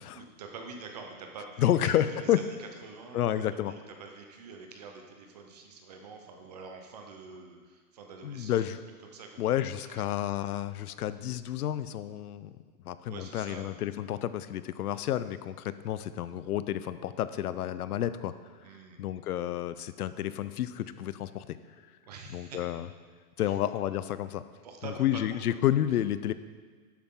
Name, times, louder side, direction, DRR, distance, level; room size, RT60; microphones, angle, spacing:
voice 1, 0.1-8.6 9.0-9.4 9.9-10.2 13.1-13.8 18.6-19.0 22.1-22.6 23.4-23.6 24.6-25.6, right 4 dB, 25° right, 3 dB, 0.8 m, -46 dB
voice 2, 1.6-2.4 3.1-3.7 8.2-8.8 9.4-12.5 12.8-18.3 19.0-21.6 22.3-22.9 23.4-24.4 24.8-26.3, left 11 dB, 75° left, 14 dB, 0.7 m, -30 dB
12.0 x 8.6 x 3.7 m, 1.5 s
supercardioid pair, 175°, 46 cm